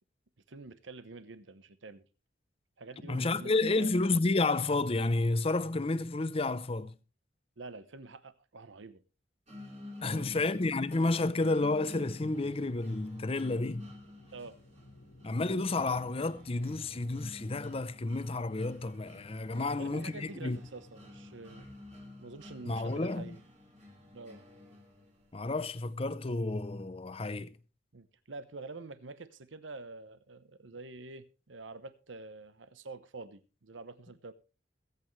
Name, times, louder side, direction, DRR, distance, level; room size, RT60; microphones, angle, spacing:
voice 1, 0.5-2.0 2.8-4.0 7.6-9.0 10.0-10.5 14.3-14.6 19.6-21.7 22.2-23.4 24.1-24.4 27.9-34.3, right 3 dB, 80° right, 0.9 m, -47 dB
voice 2, 3.1-6.9 10.0-13.9 15.2-20.6 22.6-23.4 25.3-27.5, left 2 dB, 30° left, 0.6 m, -31 dB
sound 1, 9.5-25.4, left 2 dB, 35° right, 3.6 m, -51 dB
sound 2, 12.5-24.7, left 1 dB, 75° left, 1.7 m, -59 dB
21.5 x 8.3 x 3.2 m
head